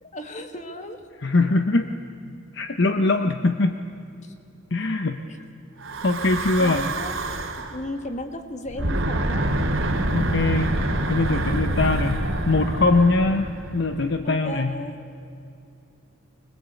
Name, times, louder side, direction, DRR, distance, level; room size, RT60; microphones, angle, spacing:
voice 1, 0.0-1.0 4.2-4.3 5.3-5.4 6.6-7.2 7.6-9.5 11.7-12.1 14.2-15.0, left 1 dB, 35° left, 6 dB, 1.8 m, -35 dB
voice 2, 1.2-1.9 2.5-3.8 4.7-5.2 6.0-6.8 10.1-12.2 12.5-14.7, left 3 dB, 55° left, 7 dB, 0.9 m, -22 dB
Breathing / Wind, 5.8-7.8 8.7-14.0, right 1 dB, 80° right, 2.5 m, -26 dB
24.5 x 20.5 x 8.3 m, 2.6 s
head